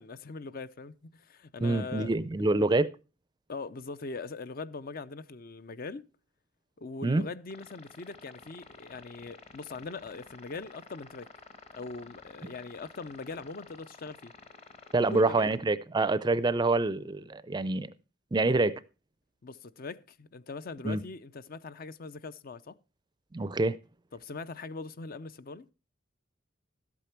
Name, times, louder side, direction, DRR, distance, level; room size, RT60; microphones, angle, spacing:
voice 1, 0.0-2.1 3.5-6.1 6.8-11.3 11.7-14.3 15.0-15.5 19.4-22.8 24.1-25.7, left 3 dB, 50° left, 0.5 m, -41 dB
voice 2, 1.6-2.9 7.0-7.2 14.9-17.9 18.3-18.8 20.8-21.0 23.3-23.8, right 2 dB, 20° right, 0.4 m, -26 dB
sound 1, 7.5-15.6, left 3 dB, 30° left, 1.2 m, -52 dB
12.5 x 8.4 x 4.4 m
head